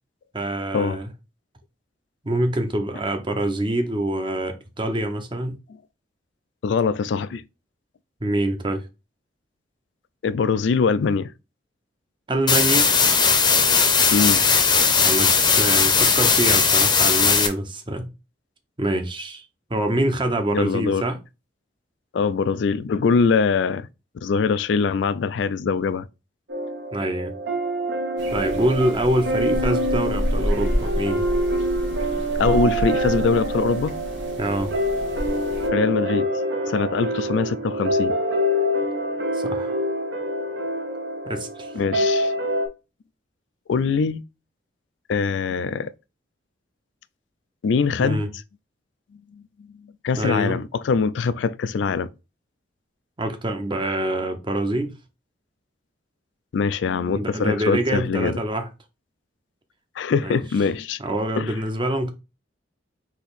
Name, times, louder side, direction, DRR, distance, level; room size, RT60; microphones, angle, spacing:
voice 1, 0.3-1.1 2.2-5.6 8.2-8.8 12.3-12.9 15.0-15.3 15.6-18.1 18.8-19.4 19.7-21.2 26.9-27.3 28.3-31.3 34.4-34.7 39.3-39.8 41.3-41.7 48.0-48.3 50.2-50.6 53.2-55.0 57.1-58.7 60.2-60.4 61.0-62.1, right 1 dB, 25° right, 0.7 m, -25 dB
voice 2, 6.6-7.4 10.2-11.3 14.1-14.5 20.5-21.1 22.1-23.9 24.2-26.1 32.4-33.9 35.7-36.3 36.7-38.1 41.7-42.3 43.7-44.2 45.1-45.9 47.6-48.2 49.3-49.4 50.0-52.1 56.5-58.4 60.0-61.0 61.4-61.6, left 5 dB, 70° left, 0.3 m, -22 dB
sound 1, 12.5-17.5, left 5 dB, 25° left, 0.7 m, -18 dB
sound 2, 26.5-42.7, equal, 65° right, 0.9 m, -26 dB
sound 3, 28.2-35.7, equal, 85° right, 1.5 m, -29 dB
4.1 x 2.9 x 4.0 m
head